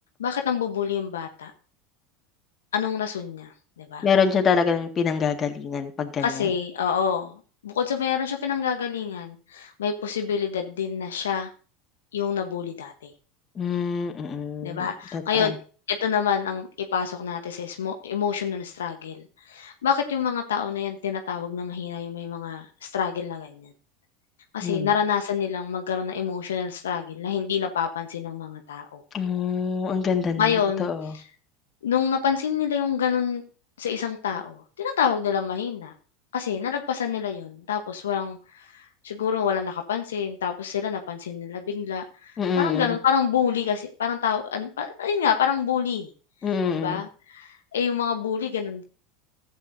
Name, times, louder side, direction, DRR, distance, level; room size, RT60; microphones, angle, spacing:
voice 1, 0.2-1.5 2.7-4.1 6.2-11.5 12.1-13.1 14.6-15.6 15.9-23.7 24.5-29.0 30.4-30.9 31.1-31.2 31.8-33.4 33.8-35.9 36.3-46.1 46.7-48.8, left 7 dB, 80° left, 5 dB, 1.0 m, -27 dB
voice 2, 4.0-6.5 13.6-14.9 15.1-15.5 24.6-24.9 29.1-31.1 42.4-43.0 46.4-47.0, left 6 dB, 30° left, 5 dB, 1.8 m, -25 dB
14.0 x 8.2 x 2.6 m, 0.37 s
hypercardioid pair, 85°, 0 cm